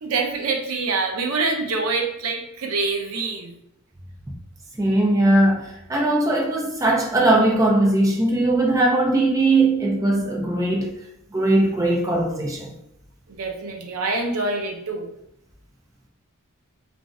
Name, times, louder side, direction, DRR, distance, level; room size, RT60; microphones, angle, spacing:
voice 1, 0.0-3.5 13.3-15.1, right 3 dB, 75° right, 0.5 m, -25 dB
voice 2, 4.8-10.9 11.3-12.7, right 2 dB, 15° right, 0.4 m, -19 dB
2.5 x 2.0 x 3.4 m
head